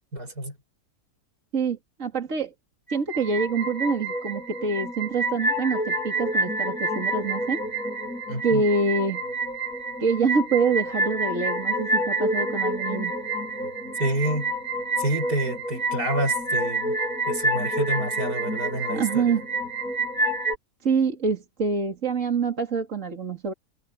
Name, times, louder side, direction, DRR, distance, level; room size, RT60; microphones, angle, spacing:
voice 1, 0.1-0.5 8.3-8.6 14.0-14.5 15.0-16.9 17.3-19.4, right 1 dB, 90° right, 7.3 m, -28 dB
voice 2, 1.5-2.5 2.9-7.6 8.4-9.2 10.0-13.1 18.9-19.4 20.8-23.5, right 4 dB, 55° right, 2.9 m, -26 dB
sound 1, 2.9-20.6, right 1 dB, 65° left, 6.5 m, -28 dB
omnidirectional pair, 1.6 m